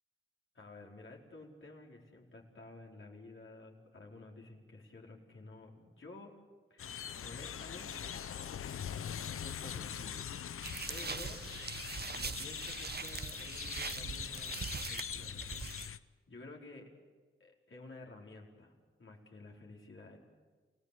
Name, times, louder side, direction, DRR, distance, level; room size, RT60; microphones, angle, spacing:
voice 1, 0.5-6.3 6.7-8.2 9.4-10.2 10.9-11.4 12.1-16.0 16.3-16.9 17.4-18.7 19.0-20.2, left 2 dB, 70° left, -1 dB, 4.6 m, -52 dB
sound 1, 6.8-16.0, left 8 dB, 90° left, 0.7 m, -42 dB
sound 2, 10.6-15.9, right 5 dB, 50° right, 0.9 m, -42 dB
29.0 x 17.0 x 8.5 m, 1.4 s
cardioid pair, 45°, 21 cm